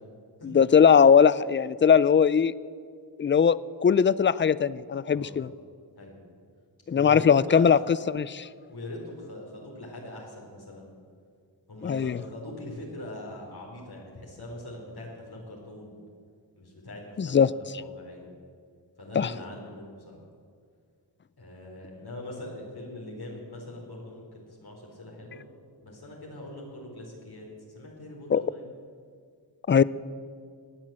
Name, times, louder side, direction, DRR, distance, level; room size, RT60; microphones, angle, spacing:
voice 1, 0.4-2.5 3.2-5.5 6.9-7.8 8.1-8.5 11.8-12.2 17.2-17.5 19.2-19.3 28.3-28.4 29.7-29.8, left 7 dB, 25° left, 19 dB, 0.4 m, -20 dB
voice 2, 6.9-7.8 8.7-10.9 11.7-15.9 16.6-18.3 19.0-20.2 21.4-25.4 25.8-27.5 27.7-28.7, left 1 dB, 55° left, -2 dB, 4.2 m, -41 dB
17.0 x 9.2 x 7.5 m, 2.1 s
cardioid pair, 60°, 45 cm